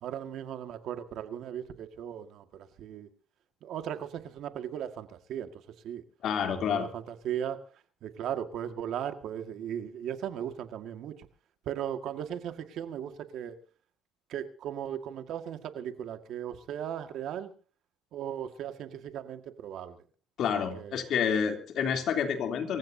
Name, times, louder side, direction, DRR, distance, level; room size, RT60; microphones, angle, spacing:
voice 1, 0.0-3.1 3.6-6.0 6.6-7.6 8.0-11.3 11.7-13.5 14.3-17.5 18.1-20.0 20.7-21.0, right 9 dB, 75° right, 1.9 m, -37 dB
voice 2, 6.2-6.9 20.4-22.8, left 7 dB, 70° left, 3.3 m, -29 dB
26.5 x 15.5 x 2.8 m
cardioid pair, 95°, 0 cm